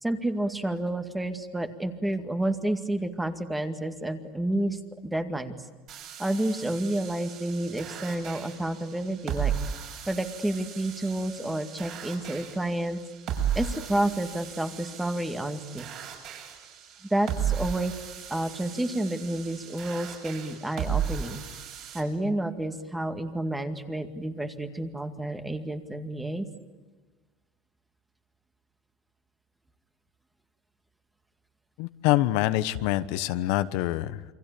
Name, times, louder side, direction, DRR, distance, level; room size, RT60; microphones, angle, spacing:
voice 1, 0.0-5.6 6.2-9.5 10.1-13.0 13.6-15.9 17.1-17.9 18.3-21.4 21.9-26.5, right 1 dB, 5° right, 8 dB, 2.1 m, -30 dB
sound 1, 5.9-22.0, right 8 dB, 45° right, 7.6 m, -35 dB
voice 2, 31.8-34.2, left 15 dB, 65° left, 12 dB, 1.1 m, -25 dB
28.0 x 24.5 x 8.5 m, 1.3 s
supercardioid pair, 140°, 0 cm